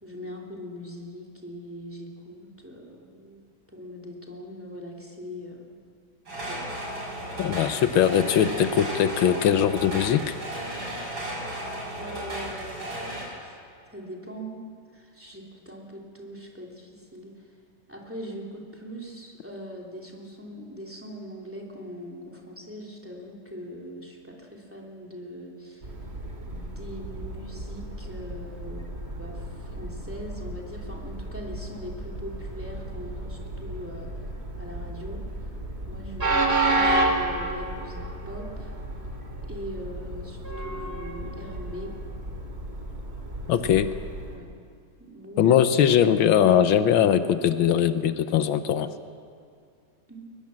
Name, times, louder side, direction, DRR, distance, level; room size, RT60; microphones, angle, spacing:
voice 1, 0.0-3.4 3.7-5.8 6.5-6.8 7.1-7.2 12.0-13.0 13.4-13.6 13.9-14.6 14.9-17.5 17.9-25.9 26.4-28.9 29.1-34.1 34.6-35.5 35.9-38.8 39.5-42.0 43.5-43.7 44.3-44.5 45.0-45.6 50.1-50.2, equal, 5° right, -1 dB, 2.9 m, -41 dB
sound 1, 6.3-13.2, right 1 dB, 75° right, 6.7 m, -34 dB
voice 2, 7.4-10.4 43.5-43.9 45.4-48.9, left 9 dB, 80° left, 11 dB, 1.6 m, -21 dB
Train, 25.8-44.4, right 2 dB, 30° right, 2.7 m, -31 dB
22.0 x 21.0 x 7.5 m, 2.3 s
omnidirectional pair, 2.2 m